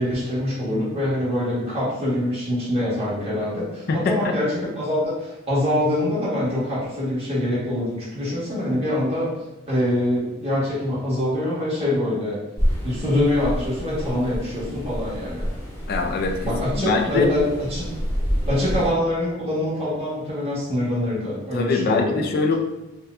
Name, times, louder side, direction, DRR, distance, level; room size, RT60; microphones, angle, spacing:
voice 1, 0.0-9.3 9.7-12.4 12.8-15.5 16.4-17.9 18.5-22.3, left 1 dB, 30° right, -9 dB, 1.3 m, -24 dB
voice 2, 3.9-4.3 15.9-17.3 21.5-22.5, left 3 dB, 50° left, 4 dB, 0.3 m, -23 dB
sound 1, 12.6-18.9, equal, 15° left, 0.8 m, -28 dB
4.1 x 2.1 x 2.4 m, 0.96 s
head